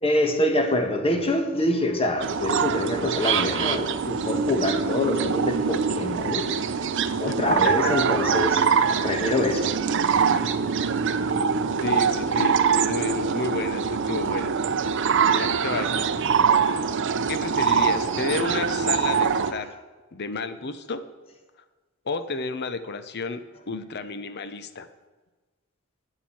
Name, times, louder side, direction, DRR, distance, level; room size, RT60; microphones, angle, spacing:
voice 1, 0.0-6.5 7.2-8.6 9.0-9.7, left 1 dB, 30° left, 5 dB, 1.3 m, -25 dB
sound 1, 2.2-19.5, right 6 dB, 60° right, 0.6 m, -24 dB
voice 2, 7.6-7.9 11.8-14.5 15.3-16.1 17.3-19.7 20.1-21.0 22.1-23.4 23.7-24.9, left 4 dB, 50° left, 11 dB, 0.7 m, -31 dB
12.0 x 8.9 x 4.5 m, 1.3 s
head